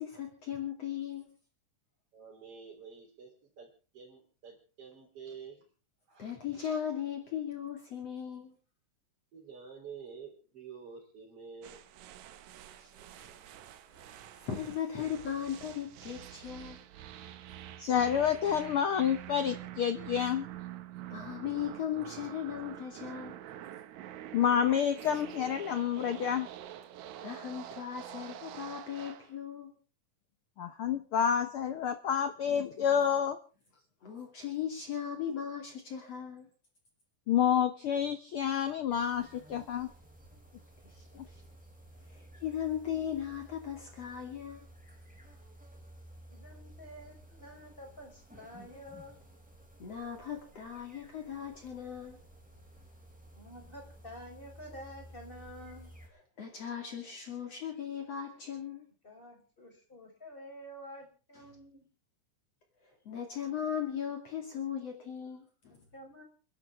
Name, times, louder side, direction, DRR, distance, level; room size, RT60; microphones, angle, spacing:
voice 1, 0.0-1.3 6.2-8.5 12.8-13.3 14.1-16.8 21.1-23.4 27.2-29.7 34.0-36.5 41.0-41.4 42.1-44.6 49.8-52.2 56.4-58.9 63.1-65.8, left 9 dB, 50° left, 2 dB, 3.5 m, -38 dB
voice 2, 2.1-5.6 6.1-6.8 9.3-11.8 13.0-13.3, right 6 dB, 45° right, -3 dB, 4.2 m, -49 dB
sound 1, 11.6-29.3, right 12 dB, 70° right, 2.1 m, -47 dB
voice 3, 17.8-20.5 24.3-26.5 30.6-33.4 37.3-39.9, left 8 dB, 75° left, 10 dB, 1.2 m, -29 dB
sound 2, 38.9-56.1, right 1 dB, ahead, 3.9 m, -54 dB
voice 4, 46.3-49.2 53.3-56.0 59.0-61.9 65.7-66.2, equal, 15° left, 2 dB, 4.6 m, -49 dB
29.5 x 11.0 x 3.5 m, 0.37 s
omnidirectional pair, 3.8 m